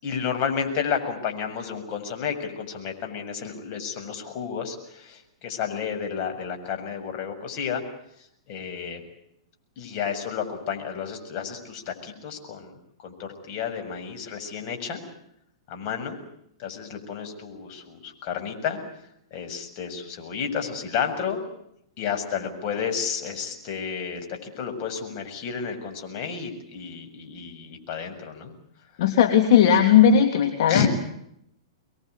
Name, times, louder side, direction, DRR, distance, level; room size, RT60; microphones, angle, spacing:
voice 1, 0.0-7.8 8.5-9.0 9.8-12.7 13.0-15.0 15.7-16.2 16.6-18.8 19.3-21.4 22.0-28.5 30.7-30.9, left 7 dB, 40° left, 4 dB, 7.2 m, -31 dB
voice 2, 29.0-30.8, left 8 dB, 60° left, 5 dB, 3.1 m, -17 dB
26.5 x 22.0 x 8.3 m, 0.75 s
hypercardioid pair, 120°, 3 cm